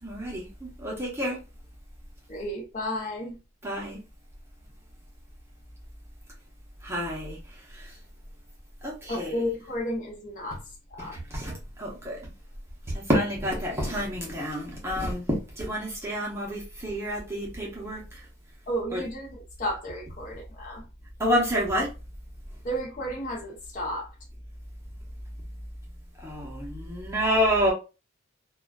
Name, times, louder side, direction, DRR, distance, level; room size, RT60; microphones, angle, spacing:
voice 1, 0.0-1.4 3.6-4.0 6.8-8.0 8.8-9.4 10.5-10.6 11.0-12.3 12.9-18.3 18.9-19.0 21.2-21.9 26.2-27.7, equal, 15° right, 0.7 m, -29 dB
voice 2, 2.3-3.3 9.1-10.6 10.9-11.1 18.7-19.3 19.6-20.8 22.6-24.1, equal, 40° left, 0.6 m, -32 dB
2.4 x 2.2 x 2.3 m
head